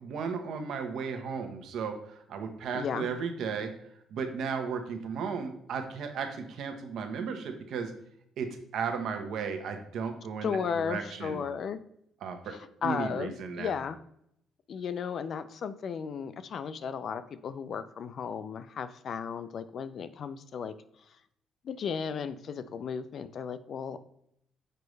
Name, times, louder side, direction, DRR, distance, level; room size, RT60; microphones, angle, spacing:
voice 1, 0.0-3.7 4.1-7.9 8.4-11.4 12.2-12.5 12.8-13.7, right 5 dB, 65° right, 6 dB, 1.0 m, -35 dB
voice 2, 2.7-3.1 10.4-11.8 12.5-14.0 14.7-20.7 21.1-21.2 21.6-24.0, left 6 dB, 45° left, 13 dB, 0.4 m, -35 dB
6.6 x 5.2 x 3.2 m, 0.74 s
cardioid pair, 155°, 0 cm